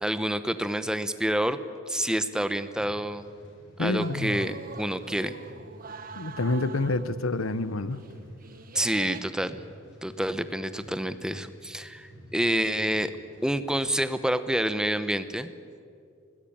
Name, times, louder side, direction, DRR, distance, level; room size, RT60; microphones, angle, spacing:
voice 1, 0.0-1.6 1.9-3.2 3.8-5.3 8.7-9.6 10.0-13.1 13.4-15.5, right 1 dB, 5° right, 12 dB, 0.9 m, -28 dB
sound 1, 2.8-13.5, equal, 60° left, 6.5 m, -51 dB
voice 2, 3.8-4.5 6.2-8.0, left 2 dB, 80° left, 15 dB, 1.0 m, -28 dB
sound 2, 4.0-7.2 7.5-7.6 7.8-9.2, right 4 dB, 45° right, 1.0 m, -43 dB
25.5 x 19.0 x 8.7 m, 2.3 s
head